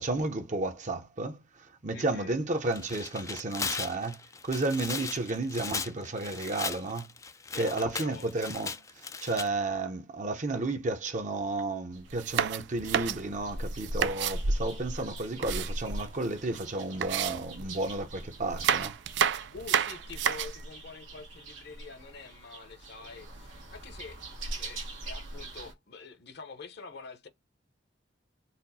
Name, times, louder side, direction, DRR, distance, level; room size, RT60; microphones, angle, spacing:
voice 1, 0.0-4.2 4.4-7.1 7.5-19.0, right 2 dB, 40° right, 0.7 m, -32 dB
voice 2, 1.9-2.3 7.5-8.3 19.5-24.2 24.5-27.3, left 4 dB, 60° left, 0.8 m, -46 dB
Tearing, 2.6-9.5, left 5 dB, 15° left, 0.3 m, -37 dB
sound 1, 11.9-25.7, right 1 dB, 90° right, 1.2 m, -40 dB
sound 2, 12.1-14.4 15.0-16.3 16.5-16.6 17.0-18.0 18.4-20.6, right 9 dB, 60° right, 0.3 m, -30 dB
4.2 x 2.1 x 4.0 m
head